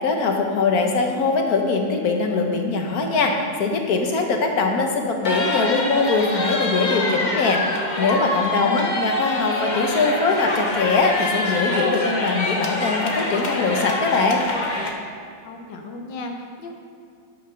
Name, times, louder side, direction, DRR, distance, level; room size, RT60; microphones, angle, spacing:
voice 1, 0.0-14.4, left 4 dB, 60° left, 2 dB, 1.4 m, -22 dB
sound 1, 5.2-14.9, left 2 dB, 35° left, 0.8 m, -25 dB
voice 2, 8.6-9.0 15.4-16.8, left 3 dB, 80° left, 3 dB, 1.7 m, -34 dB
11.5 x 6.4 x 5.7 m, 2.3 s
omnidirectional pair, 1.9 m